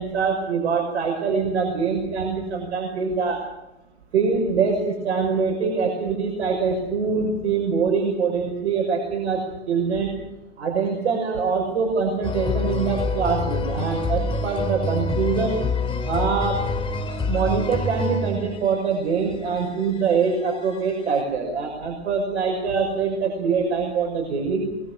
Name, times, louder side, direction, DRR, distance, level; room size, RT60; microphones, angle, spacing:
voice 1, 0.0-3.4 4.1-10.1 10.6-15.6 16.1-16.6 17.3-24.7, right 5 dB, 75° right, 0 dB, 6.1 m, -24 dB
sound 1, 12.2-18.7 19.6-20.9 21.1-21.2, left 2 dB, 15° left, 3.3 m, -26 dB
24.0 x 22.5 x 6.6 m, 0.95 s
hypercardioid pair, 120°, 34 cm